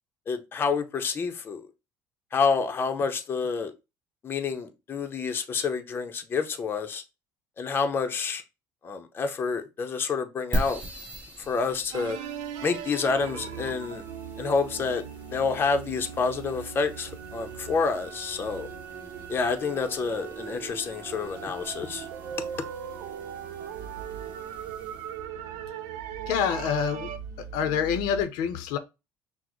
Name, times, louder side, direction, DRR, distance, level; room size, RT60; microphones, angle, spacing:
voice 1, 0.3-1.7 2.3-3.7 4.2-7.0 7.6-8.4 8.8-10.8 11.4-12.2 12.6-14.0 14.4-15.0 15.3-18.7 19.3-22.1 22.6-22.7, left 5 dB, 30° left, 0.6 m, -28 dB
sound 1, 10.5-25.2, right 1 dB, 15° right, 1.3 m, -41 dB
sound 2, 11.9-15.4 17.1-17.2 17.8-27.2, right 9 dB, 90° right, 0.5 m, -40 dB
sound 3, 13.1-28.2, right 6 dB, 50° right, 0.8 m, -43 dB
voice 2, 26.2-27.1 27.4-28.8, left 8 dB, 80° left, 0.6 m, -27 dB
6.0 x 2.0 x 3.0 m
cardioid pair, 115°, 7 cm